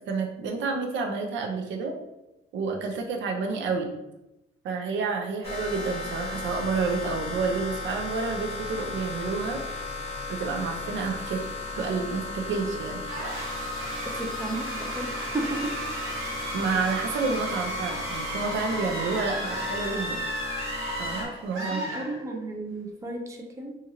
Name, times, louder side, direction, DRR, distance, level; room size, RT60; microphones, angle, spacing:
voice 1, 0.1-1.9 2.5-3.9 4.6-9.6 10.3-11.5 11.8-13.0 16.5-20.2 21.0-22.0, right 4 dB, 70° right, 3 dB, 0.6 m, -29 dB
sound 1, 5.4-21.3, left 3 dB, 30° left, 0.8 m, -36 dB
sound 2, 13.0-22.6, right 1 dB, 90° right, 1.0 m, -34 dB
voice 2, 14.2-15.8 21.6-23.8, right 2 dB, 15° right, 1 dB, 0.5 m, -34 dB
2.8 x 2.5 x 2.7 m, 0.94 s
cardioid pair, 90°, 20 cm